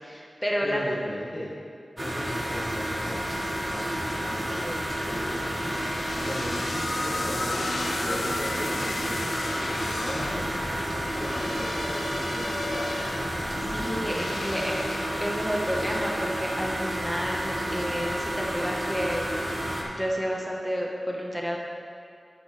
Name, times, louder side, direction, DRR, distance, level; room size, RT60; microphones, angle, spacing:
voice 1, 0.0-0.9 4.5-4.8 13.7-14.8 15.2-19.4 19.8-21.6, equal, 5° left, -2 dB, 1.4 m, -30 dB
voice 2, 0.6-1.5 2.0-4.7 5.0-5.8 6.2-9.2 9.5-10.4 10.9-13.0, left 1 dB, 65° left, -11 dB, 2.4 m, -37 dB
sound 1, 2.0-19.8, right 1 dB, 30° right, 2.0 m, -31 dB
sound 2, 5.2-16.5, left 2 dB, 80° left, 0.7 m, -35 dB
10.5 x 10.0 x 3.5 m, 2.6 s
wide cardioid pair, 55°, 0 cm